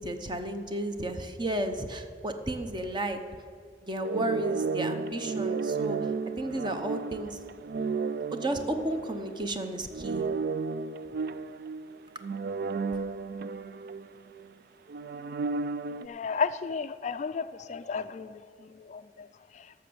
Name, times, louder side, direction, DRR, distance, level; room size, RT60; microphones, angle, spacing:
voice 1, 0.0-3.2 3.8-6.1 6.4-7.4 8.3-10.3, right 1 dB, 25° right, 7 dB, 0.8 m, -33 dB
sound 1, 4.0-9.5 9.9-14.5 14.9-16.1, right 4 dB, 55° right, 0.3 m, -33 dB
voice 2, 16.0-19.7, left 5 dB, 40° left, 12 dB, 0.3 m, -34 dB
12.0 x 6.8 x 7.8 m, 2.2 s
head